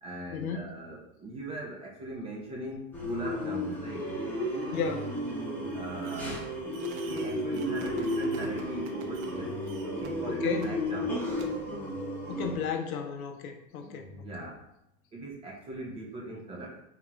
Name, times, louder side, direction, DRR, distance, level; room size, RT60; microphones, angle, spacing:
voice 1, 0.0-4.1 5.7-6.5 7.0-11.2 13.8-14.6 15.1-16.8, right 1 dB, 15° right, -2 dB, 0.3 m, -40 dB
sound 1, 2.9-12.6, equal, 5° left, 0.7 m, -33 dB
voice 2, 4.7-5.1 10.3-10.7 12.3-14.1, left 6 dB, 85° left, 4 dB, 0.6 m, -33 dB
Fireworks, 6.0-6.5 6.7-9.4 9.6-10.1 10.6-10.7 11.4-11.5, right 7 dB, 70° right, 0.6 m, -50 dB
3.4 x 2.4 x 3.1 m, 0.83 s
hypercardioid pair, 105°, 41 cm